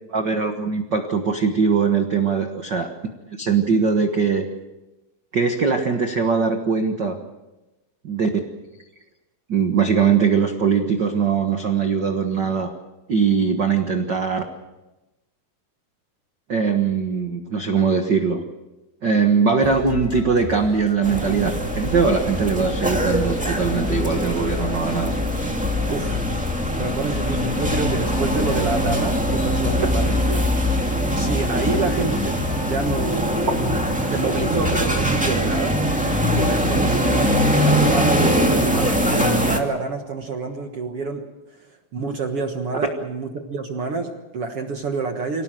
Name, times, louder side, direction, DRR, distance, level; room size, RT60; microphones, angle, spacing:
voice 1, 0.1-2.9 3.4-4.5 5.3-7.2 8.0-8.5 9.5-12.7 13.1-14.4 16.5-18.4 19.0-25.1, right 5 dB, 85° right, 5 dB, 0.9 m, -21 dB
sound 1, 19.6-35.4, left 5 dB, 75° left, 5.5 m, -33 dB
sound 2, 21.0-39.6, equal, 5° right, 1.4 m, -22 dB
voice 2, 25.9-26.3 26.8-30.4 31.1-33.6 34.1-35.8 36.3-37.3 37.6-41.2 41.5-41.6 41.9-45.4, right 4 dB, 55° right, 4 dB, 1.7 m, -28 dB
25.0 x 18.0 x 7.6 m, 1.1 s
omnidirectional pair, 4.4 m